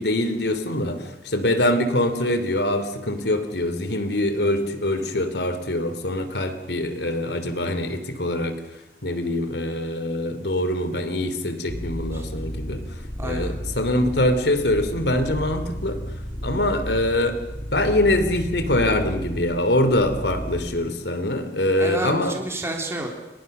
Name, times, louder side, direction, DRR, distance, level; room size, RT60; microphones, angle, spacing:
voice 1, 0.0-8.6 9.0-16.0 16.4-17.4 17.7-22.4, left 1 dB, 75° left, 10 dB, 3.0 m, -24 dB
kerri-cat-lrdelay-loopable, 11.7-20.9, equal, 35° left, 3.3 m, -33 dB
voice 2, 13.2-13.5 21.8-23.1, right 1 dB, 15° right, 2 dB, 3.8 m, -30 dB
29.5 x 25.0 x 6.8 m, 1.0 s
head